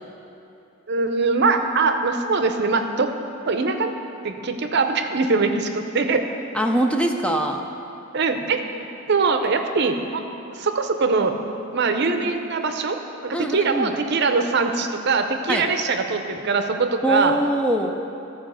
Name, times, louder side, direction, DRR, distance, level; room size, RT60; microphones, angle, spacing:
voice 1, 0.9-3.1 3.5-3.9 4.2-6.2 8.1-8.6 9.1-10.2 10.5-11.3 11.7-13.0 13.2-17.3, right 4 dB, 55° right, 6 dB, 0.6 m, -22 dB
voice 2, 6.5-7.6 13.3-13.9 15.5-15.7 17.0-17.9, right 1 dB, 5° left, 2 dB, 0.5 m, -22 dB
13.5 x 4.8 x 6.2 m, 2.9 s
head